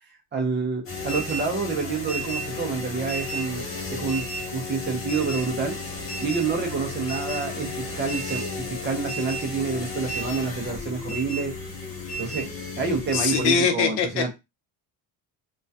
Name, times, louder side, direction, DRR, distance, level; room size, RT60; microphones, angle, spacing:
voice 1, 0.3-3.6 3.9-5.7 6.2-7.7 8.0-8.4 8.8-11.5 12.2-12.5 12.8-14.3, right 4 dB, 25° right, 0.4 m, -28 dB
sound 1, 0.9-13.6, left 1 dB, 30° left, 0.6 m, -33 dB
voice 2, 13.1-14.3, left 6 dB, 70° left, 0.7 m, -23 dB
2.2 x 2.2 x 2.5 m
cardioid pair, 170°, 43 cm